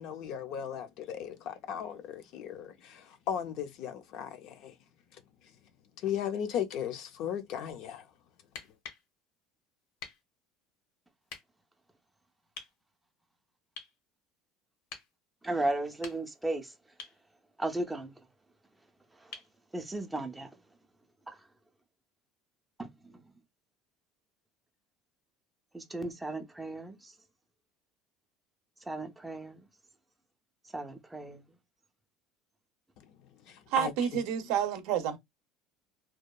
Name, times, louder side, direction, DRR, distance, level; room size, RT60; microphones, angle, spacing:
voice 1, 0.0-4.7 6.0-8.1 33.0-33.1 33.5-34.2, left 9 dB, 55° left, 0.4 m, -36 dB
sound 1, 8.4-9.1 10.0-10.2 11.3-11.4 12.6-12.8 13.8-14.0 14.9-15.1 15.8-16.5 17.0-17.2 19.3-19.6 21.4-21.5, left 5 dB, 80° left, 0.7 m, -46 dB
voice 2, 15.4-16.7 17.6-18.1 19.2-19.4 19.7-20.5 21.3-21.4 22.8-23.2 25.7-27.1 28.9-29.7 30.7-31.4, right 2 dB, 5° right, 0.4 m, -35 dB
voice 3, 33.7-35.2, right 9 dB, 70° right, 0.5 m, -29 dB
2.7 x 2.2 x 2.2 m
cardioid pair, 150°, 0 cm